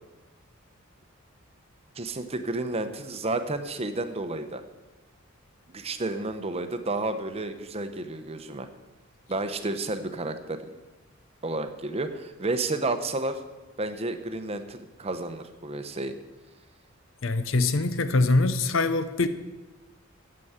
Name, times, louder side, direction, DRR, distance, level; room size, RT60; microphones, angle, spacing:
voice 1, 1.9-4.6 5.7-8.7 9.3-10.6 11.4-13.4 13.8-16.1, right 2 dB, 30° right, 0.8 m, -31 dB
voice 2, 17.2-19.3, left 3 dB, 65° left, 0.8 m, -23 dB
9.1 x 7.7 x 8.0 m
head